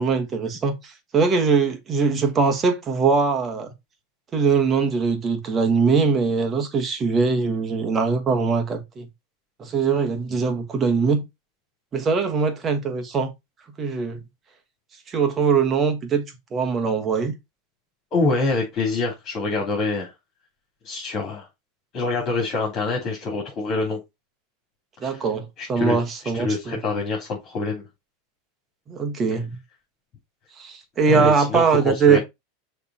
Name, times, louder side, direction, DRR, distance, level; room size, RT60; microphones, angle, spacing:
voice 1, 0.0-3.7 4.3-9.1 9.6-11.2 11.9-13.3 13.8-14.2 15.1-16.2 16.5-17.3 25.0-26.8 28.9-29.6 30.6-32.2, right 5 dB, 25° right, 1.4 m, -21 dB
voice 2, 18.1-20.1 20.8-21.5 21.9-24.0 25.0-25.3 25.6-26.0 26.3-27.8 31.0-32.2, left 3 dB, 35° left, 3.4 m, -25 dB
6.6 x 3.5 x 4.3 m
supercardioid pair, 140°, 0 cm